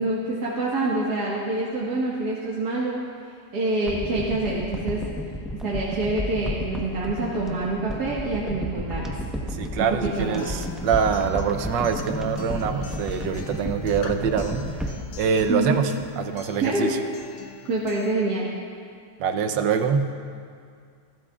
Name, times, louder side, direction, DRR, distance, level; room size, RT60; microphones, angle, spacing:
voice 1, 0.0-3.0 3.5-5.0 5.6-9.1 9.9-10.5 15.5-15.8 16.6-16.9 17.7-18.5, right 2 dB, 65° right, -6 dB, 2.1 m, -26 dB
sound 1, 3.9-16.3 16.6-16.7, equal, ahead, 0.7 m, -33 dB
voice 2, 9.5-17.0 19.2-20.1, right 6 dB, 90° right, 7 dB, 1.5 m, -25 dB
Acoustic guitar, 10.1-18.1, left 7 dB, 75° left, 1.5 m, -41 dB
29.0 x 12.5 x 2.4 m, 2.2 s
omnidirectional pair, 1.9 m